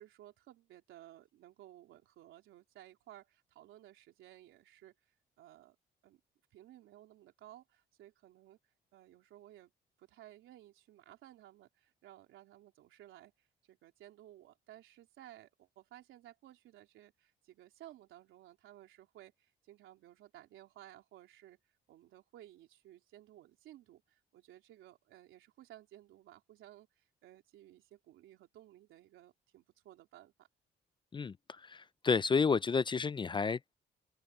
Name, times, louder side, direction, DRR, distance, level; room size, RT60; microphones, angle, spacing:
voice 1, 0.0-5.8 6.0-6.2 6.5-8.6 8.9-9.7 10.0-21.6 21.9-30.5, right 13 dB, 90° right, 3.6 m, -57 dB
voice 2, 31.6-33.8, left 5 dB, 25° left, 0.4 m, -31 dB
cardioid pair, 90°, 20 cm